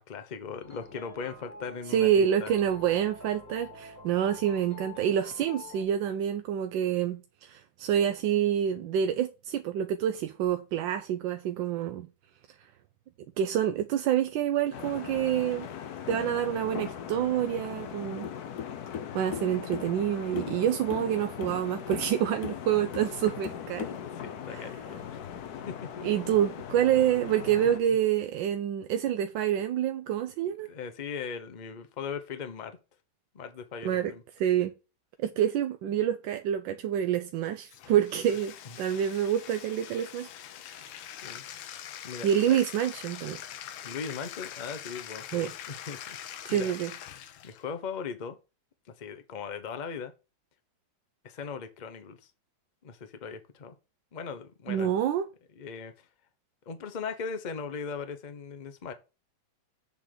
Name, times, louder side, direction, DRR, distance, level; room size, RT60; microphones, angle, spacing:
voice 1, 0.0-2.5 24.0-25.2 25.7-26.1 30.4-32.8 33.3-34.2 37.9-38.0 38.6-38.8 41.0-42.6 43.8-46.2 46.5-46.8 47.4-48.4 48.9-50.1 51.2-52.3 52.8-53.7 54.1-54.9 55.6-56.1 56.7-58.9, left 6 dB, 35° left, 0.7 m, -39 dB
sound 1, 0.6-5.8, left 2 dB, 10° left, 1.9 m, -48 dB
voice 2, 1.9-12.1 13.4-15.7 16.1-18.3 19.1-24.0 24.5-24.7 26.0-30.7 33.8-34.1 34.4-34.7 35.2-40.3 40.7-40.8 42.2-43.4 45.3-45.5 46.4-46.9 54.7-55.2, right 10 dB, 85° right, 1.3 m, -27 dB
sound 2, 14.7-27.8, left 8 dB, 60° left, 1.2 m, -39 dB
Bathtub (filling or washing), 37.6-47.7, left 10 dB, 90° left, 1.5 m, -43 dB
7.1 x 3.9 x 6.6 m
omnidirectional pair, 2.1 m